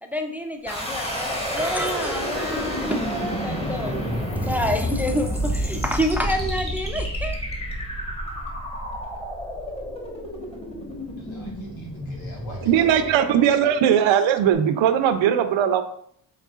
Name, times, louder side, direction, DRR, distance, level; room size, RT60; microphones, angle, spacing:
voice 1, 0.0-7.4, equal, 5° right, 5 dB, 0.4 m, -28 dB
sound 1, 0.7-13.6, equal, 15° left, 1.1 m, -29 dB
voice 2, 11.2-13.8, left 2 dB, 90° left, -2 dB, 1.5 m, -41 dB
voice 3, 12.7-15.8, right 9 dB, 80° right, 9 dB, 0.6 m, -19 dB
4.7 x 3.6 x 2.4 m, 0.66 s
cardioid pair, 65°, 46 cm